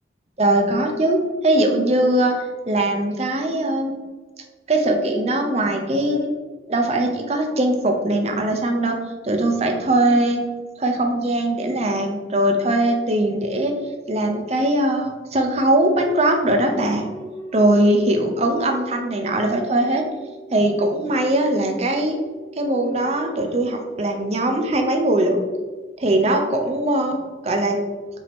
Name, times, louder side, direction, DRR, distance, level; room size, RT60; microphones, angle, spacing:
voice 1, 0.4-2.3 2.7-3.9 4.7-6.4 6.7-9.0 9.2-10.4 10.8-13.7 14.1-17.1 17.5-20.0 20.5-22.2 22.6-25.5 26.0-27.2 27.4-27.8, right 1 dB, 35° right, 3 dB, 0.5 m, -20 dB
sound 1, 16.4-27.0, right 2 dB, 10° left, 0.6 m, -42 dB
5.1 x 2.8 x 3.5 m, 1.3 s
head